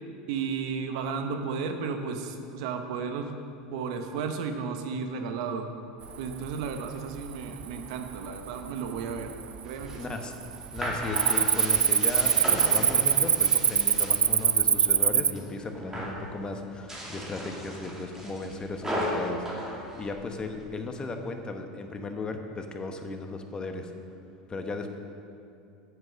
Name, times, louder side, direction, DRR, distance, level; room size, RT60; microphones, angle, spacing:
voice 1, 0.3-3.4 3.7-5.7 6.2-9.3 9.6-10.1, right 5 dB, 70° right, 6 dB, 0.9 m, -33 dB
Cricket, 6.3-6.8 7.2-7.6 8.2-8.3 9.0-9.6 9.8-10.1 10.4-15.3, right 8 dB, 30° right, 0.3 m, -23 dB
sound 1, 9.7-14.6 14.9-15.5 15.8-16.3 16.8-20.6, equal, 15° right, 2.5 m, -35 dB
voice 2, 10.0-10.3 10.7-19.5 20.0-23.9 24.5-25.0, left 3 dB, 25° left, 5 dB, 1.0 m, -36 dB
8.1 x 7.6 x 6.4 m, 2.7 s
hypercardioid pair, 100°, 4 cm